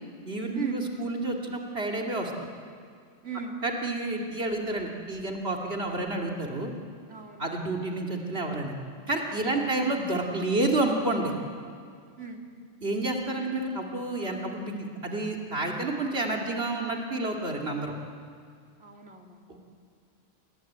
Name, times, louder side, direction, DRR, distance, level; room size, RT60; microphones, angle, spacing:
voice 1, 0.2-2.3 3.6-6.7 7.4-8.7 9.1-11.3 12.8-17.9 19.5-19.6, right 2 dB, 60° right, 0 dB, 2.7 m, -29 dB
voice 2, 3.2-3.6 7.1-7.7 9.4-9.8 12.2-12.5 18.8-19.4, right 5 dB, 75° right, 1 dB, 3.2 m, -38 dB
28.0 x 20.5 x 9.4 m, 2.2 s
omnidirectional pair, 1.2 m